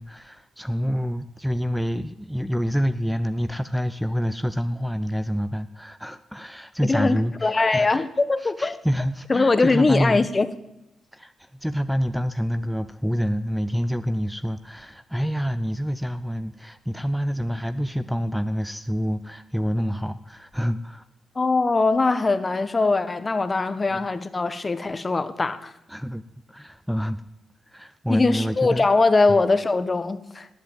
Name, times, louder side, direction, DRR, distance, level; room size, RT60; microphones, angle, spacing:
voice 1, 0.0-8.1 8.4-10.3 11.1-21.0 23.9-24.0 25.9-26.2 26.5-27.2 27.7-28.9 29.3-29.4, equal, ahead, 12 dB, 0.7 m, -27 dB
voice 2, 6.8-8.8 9.3-10.5 21.3-25.7 28.1-30.5, left 3 dB, 30° left, 12 dB, 1.3 m, -21 dB
18.0 x 8.1 x 8.8 m, 0.86 s
cardioid pair, 70°, 0 cm